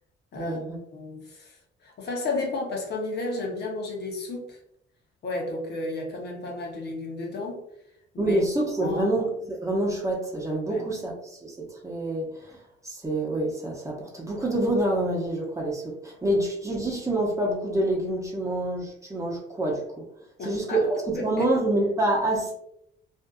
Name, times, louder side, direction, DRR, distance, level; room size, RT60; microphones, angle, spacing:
voice 1, 0.3-0.8 8.2-20.1 20.4-22.5, right 1 dB, 15° right, -3 dB, 0.8 m, -27 dB
voice 2, 0.9-1.6 1.8-4.6 5.2-7.6 8.1-8.4 8.8-9.1 10.7-10.9 20.4-20.8 21.1-21.4, left 2 dB, 60° left, 0 dB, 0.8 m, -32 dB
2.6 x 2.4 x 2.3 m, 0.75 s
cardioid pair, 90°, 20 cm